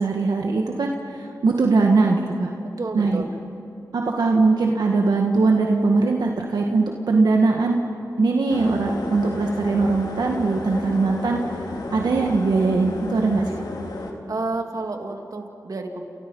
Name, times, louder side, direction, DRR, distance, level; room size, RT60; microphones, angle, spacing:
voice 1, 0.0-2.5 2.9-3.2 3.9-7.8 8.2-11.4 11.9-13.5, right 3 dB, 85° right, 1 dB, 1.8 m, -20 dB
voice 2, 2.8-3.3 14.3-16.0, right 3 dB, 60° right, 3 dB, 2.8 m, -30 dB
sound 1, 8.5-14.1, left 2 dB, 85° left, 2.9 m, -33 dB
29.5 x 29.0 x 5.6 m, 2.7 s
cardioid pair, 50°, 7 cm